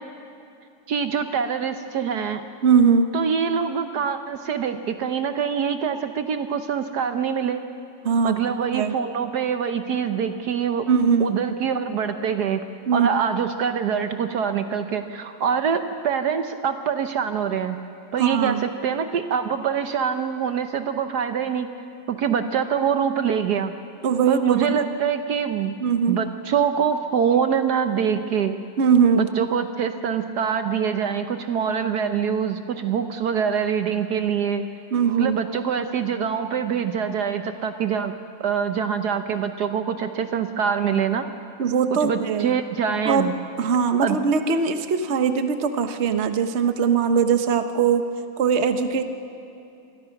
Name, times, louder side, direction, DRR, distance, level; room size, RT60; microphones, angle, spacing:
voice 1, 0.9-2.4 3.1-7.6 8.2-10.9 11.2-12.6 12.9-17.8 18.1-21.7 22.1-23.7 24.3-25.8 26.1-28.6 29.1-34.7 35.2-38.1 38.4-41.3 41.9-43.3 44.0-44.2, right 7 dB, 65° right, 8 dB, 1.3 m, -24 dB
voice 2, 2.6-3.1 8.0-8.4 8.7-8.9 10.9-11.3 12.9-13.1 18.2-18.6 24.0-24.8 25.8-26.2 28.8-29.3 34.9-35.4 41.6-42.6 43.0-43.3 43.6-48.0 48.4-49.0, right 6 dB, 45° right, 8 dB, 1.2 m, -20 dB
27.0 x 21.5 x 5.9 m, 2.7 s
omnidirectional pair, 2.0 m